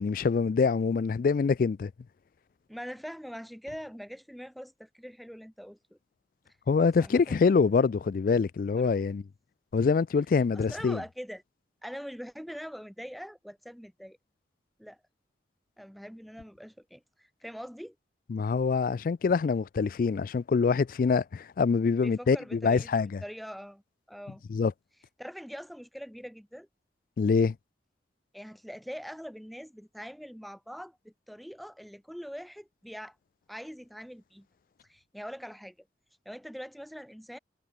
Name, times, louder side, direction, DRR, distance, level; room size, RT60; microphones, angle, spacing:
voice 1, 0.0-1.9 6.7-9.2 9.7-11.0 18.3-23.2 24.5-24.7 27.2-27.5, left 5 dB, 50° left, 0.3 m, -25 dB
voice 2, 2.7-6.0 7.0-7.4 8.8-8.9 10.5-11.4 11.8-14.2 14.8-15.0 15.8-17.9 22.0-22.9 23.2-23.8 24.1-24.4 25.2-26.7 28.3-33.1 33.5-34.5 34.9-35.7 36.2-37.4, equal, ahead, 1.7 m, -43 dB
head